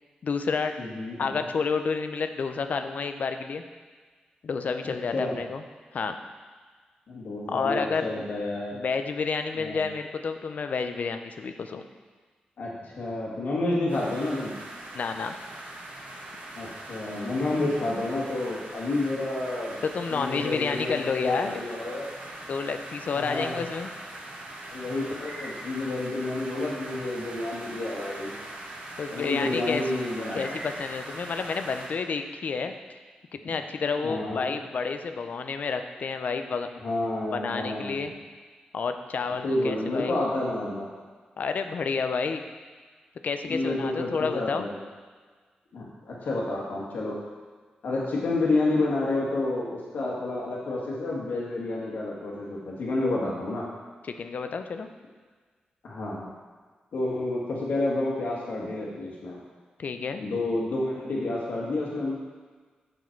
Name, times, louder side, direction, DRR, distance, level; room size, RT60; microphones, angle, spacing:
voice 1, 0.2-0.7 1.2-3.6 4.4-5.6 5.9-6.2 7.5-8.1 8.7-11.8 14.9-15.3 19.8-21.6 22.5-23.9 29.0-29.8 30.3-32.7 33.4-36.7 37.3-38.1 38.7-40.2 41.4-42.4 43.2-44.7 54.2-54.9 59.8-60.2, left 5 dB, 60° left, 7 dB, 0.6 m, -30 dB
voice 2, 0.8-1.4 4.8-5.4 7.1-8.7 9.5-9.8 12.6-14.5 16.6-19.8 20.1-22.1 23.1-23.6 24.7-28.3 29.1-30.6 34.0-34.5 36.8-38.1 39.4-40.9 43.5-44.8 45.7-47.2 47.8-53.6 55.8-56.3 56.9-59.4 60.2-62.1, left 2 dB, 80° left, -4 dB, 1.7 m, -30 dB
sound 1, 13.9-31.9, right 1 dB, 70° right, 1.6 m, -41 dB
7.3 x 6.2 x 4.6 m, 1.5 s
cardioid pair, 95°, 3 cm